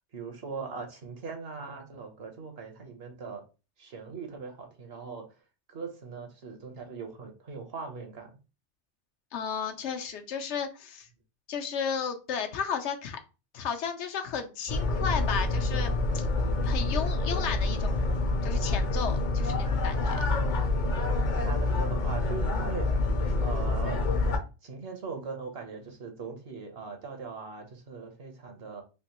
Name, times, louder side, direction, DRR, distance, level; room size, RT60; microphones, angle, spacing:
voice 1, 0.1-3.4 3.8-5.2 5.7-8.3 21.4-22.9 23.4-24.0 24.6-28.8, right 5 dB, 60° right, 4 dB, 1.0 m, -40 dB
voice 2, 9.3-11.1 11.5-13.2 13.5-16.3 16.6-18.0 18.4-20.2, left 7 dB, 80° left, 6 dB, 0.9 m, -33 dB
sound 1, 14.7-24.4, left 2 dB, 50° left, 0.7 m, -27 dB
3.4 x 2.9 x 2.9 m, 0.31 s
omnidirectional pair, 1.2 m